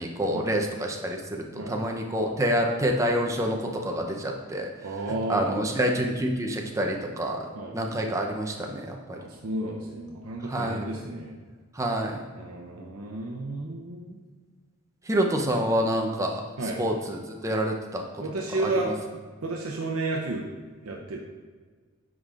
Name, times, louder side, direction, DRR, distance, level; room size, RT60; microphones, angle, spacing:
voice 1, 0.0-4.7 5.3-7.5 7.7-9.2 10.5-11.0 11.7-12.2 15.1-16.4 16.8-18.0 18.6-18.9, equal, 15° right, 1 dB, 0.6 m, -27 dB
voice 2, 4.8-5.6 7.5-7.8 9.1-11.4 12.4-14.2 16.6-16.8 18.2-18.9 19.4-20.5 20.8-21.2, right 2 dB, 75° right, -1 dB, 0.7 m, -32 dB
9.4 x 5.0 x 2.4 m, 1.5 s
head